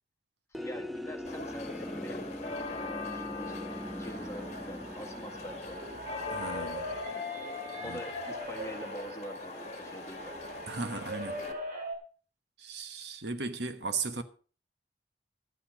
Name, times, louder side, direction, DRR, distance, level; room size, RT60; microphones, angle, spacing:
voice 1, 0.5-3.6 4.0-6.0 7.8-10.4, equal, 15° left, 1.6 m, -45 dB
sound 1, 0.5-7.1, equal, ahead, 0.5 m, -42 dB
sound 2, 1.3-11.5, left 3 dB, 40° left, 1.6 m, -42 dB
sound 3, 2.1-11.9, equal, 50° right, 3.0 m, -42 dB
voice 2, 6.3-6.9 7.8-8.0 10.7-11.4 12.6-14.2, right 4 dB, 70° right, 1.2 m, -36 dB
12.5 x 9.0 x 5.0 m
head